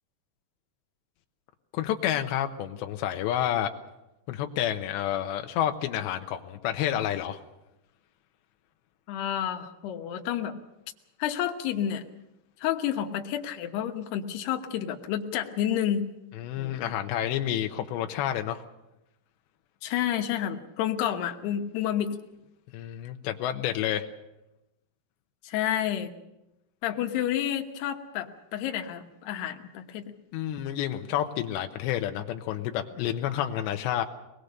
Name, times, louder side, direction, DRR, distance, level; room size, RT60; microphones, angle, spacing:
voice 1, 1.7-3.7 4.3-7.4 16.4-18.6 22.7-24.1 30.3-34.1, left 11 dB, 90° left, 5 dB, 3.2 m, -29 dB
voice 2, 9.1-10.6 11.2-12.0 12.6-16.1 16.6-16.8 19.8-22.1 25.4-26.1 26.8-30.1, left 10 dB, 75° left, 4 dB, 3.3 m, -30 dB
24.0 x 20.0 x 6.6 m, 0.92 s
omnidirectional pair, 4.9 m